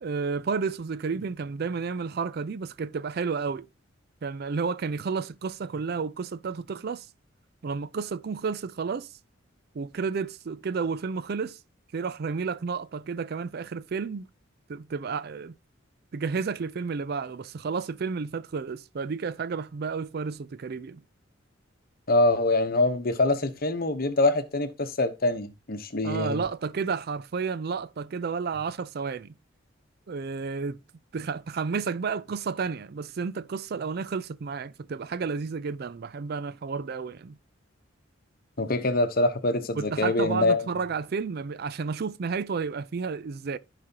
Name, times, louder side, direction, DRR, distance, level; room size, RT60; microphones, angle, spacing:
voice 1, 0.0-3.7 4.2-7.1 7.6-9.1 9.7-11.6 11.9-14.3 14.7-15.5 16.1-21.0 26.0-29.3 30.1-30.8 31.1-37.4 39.8-43.6, right 5 dB, 50° right, 0.4 m, -31 dB
voice 2, 22.1-26.4 38.6-40.6, left 2 dB, 45° left, 1.0 m, -24 dB
15.0 x 5.0 x 2.9 m
head